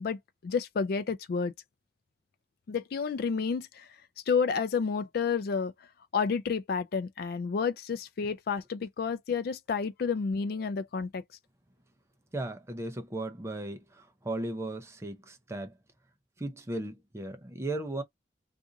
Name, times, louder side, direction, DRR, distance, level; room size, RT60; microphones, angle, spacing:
voice 1, 0.0-1.5 2.7-3.9 4.3-5.7 6.1-11.2, left 5 dB, 60° left, 0.4 m, -30 dB
voice 2, 12.3-15.7 16.4-18.0, right 2 dB, 15° right, 0.5 m, -36 dB
2.6 x 2.5 x 3.8 m
head